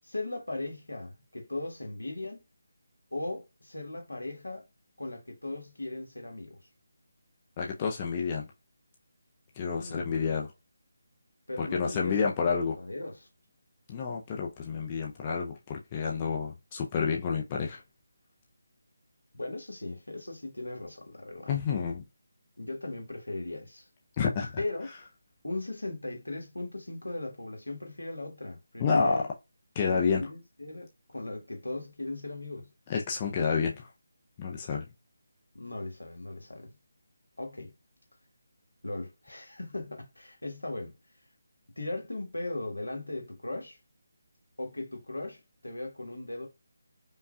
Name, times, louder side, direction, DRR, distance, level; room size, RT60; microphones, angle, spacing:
voice 1, 0.0-2.4 3.1-4.6 5.0-6.6 9.8-10.3 11.5-13.3 19.3-21.6 22.6-23.9 24.6-24.9 25.4-29.3 29.9-32.7 35.5-36.7 37.4-37.7 38.8-40.9 41.8-43.8 44.6-46.5, left 2 dB, 80° left, 1.4 m, -38 dB
voice 2, 7.6-8.5 9.6-10.5 11.6-12.7 13.9-17.8 21.5-22.0 24.2-24.5 28.8-29.2 29.8-30.2 32.9-33.9 34.4-34.9, left 5 dB, 25° left, 0.5 m, -29 dB
5.3 x 2.3 x 2.3 m
figure-of-eight pair, 155°, 0 cm